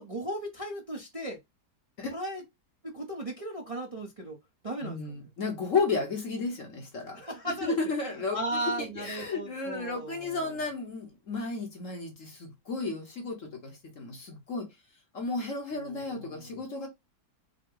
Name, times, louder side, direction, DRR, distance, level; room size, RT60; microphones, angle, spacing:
voice 1, 0.0-1.4 2.1-2.4 2.8-4.4 4.6-5.3 7.1-7.7 8.3-10.5 15.8-16.6, right 1 dB, 25° right, 0.8 m, -36 dB
voice 2, 4.8-7.2 7.6-14.7 15.1-16.9, left 4 dB, 50° left, 1.4 m, -33 dB
5.6 x 2.3 x 3.8 m
omnidirectional pair, 1.8 m